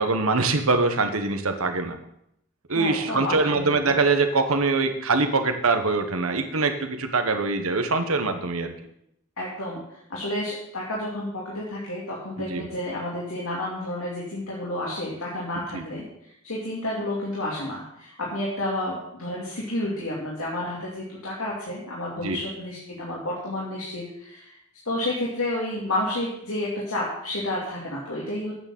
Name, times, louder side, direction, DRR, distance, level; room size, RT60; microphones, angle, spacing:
voice 1, 0.0-2.0 2.7-8.7 12.4-12.7 15.7-15.8 22.2-22.4, right 3 dB, 85° right, 7 dB, 1.2 m, -23 dB
voice 2, 2.7-3.7 9.4-16.0 16.4-24.6 24.9-28.5, left 1 dB, 85° left, -5 dB, 2.7 m, -30 dB
8.8 x 6.8 x 7.3 m, 0.77 s
head